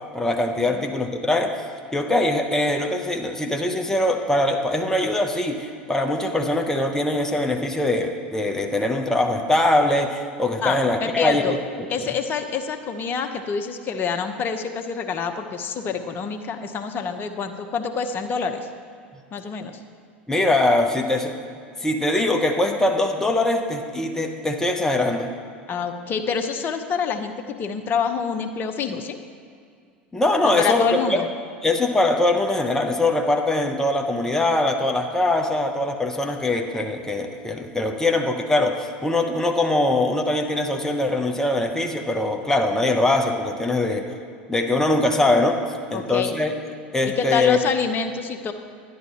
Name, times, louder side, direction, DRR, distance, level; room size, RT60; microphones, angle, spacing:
voice 1, 0.1-1.6 1.9-11.6 20.3-21.3 21.8-25.3 30.1-31.2 31.6-44.1 44.5-45.6 45.9-46.5 46.9-47.6, left 2 dB, 10° left, 3 dB, 0.9 m, -22 dB
voice 2, 10.6-11.6 11.9-18.7 19.3-19.8 25.7-29.2 30.4-31.3 45.9-46.3 47.1-48.5, left 6 dB, 40° left, 7 dB, 0.9 m, -27 dB
11.0 x 10.5 x 4.2 m, 2.2 s
hypercardioid pair, 80°, 6 cm